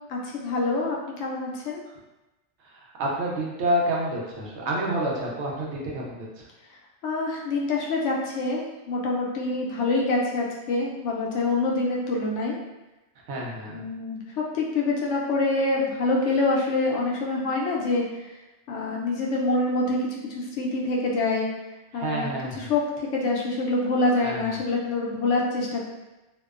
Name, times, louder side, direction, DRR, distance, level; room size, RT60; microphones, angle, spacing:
voice 1, 0.1-1.8 7.0-12.6 13.7-18.0 18.7-21.5 21.9-22.3 22.6-22.8 23.1-25.9, left 2 dB, 85° left, -2 dB, 0.9 m, -26 dB
voice 2, 3.0-6.5 13.3-13.9 21.9-22.7 24.2-24.6, right 1 dB, 75° right, -3 dB, 0.9 m, -28 dB
2.5 x 2.1 x 2.3 m, 1.0 s
omnidirectional pair, 1.2 m